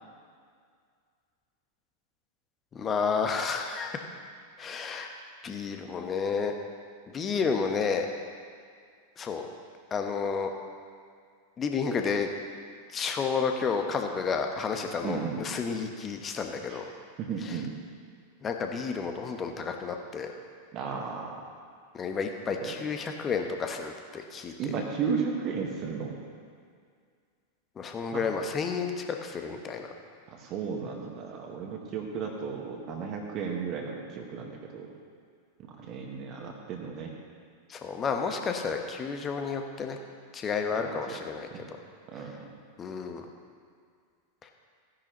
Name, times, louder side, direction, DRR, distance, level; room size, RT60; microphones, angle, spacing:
voice 1, 2.7-4.0 4.6-5.1 5.4-6.5 7.1-8.1 9.2-9.5 9.9-10.5 11.6-12.3 12.9-16.8 17.4-17.6 18.4-20.3 21.9-24.7 27.8-29.9 37.7-40.0 40.3-41.8 42.8-43.3 44.4-44.5, left 5 dB, 25° left, 4 dB, 1.1 m, -31 dB
voice 2, 15.0-15.4 16.7-16.8 17.2-17.7 20.7-21.5 22.6-22.7 24.6-26.2 28.1-28.2 30.3-34.9 35.6-37.1 40.7-41.2 41.5-41.6 42.1-42.5, right 6 dB, 35° right, 1 dB, 1.6 m, -34 dB
16.0 x 10.5 x 3.1 m, 2.1 s
figure-of-eight pair, 90°, 0 cm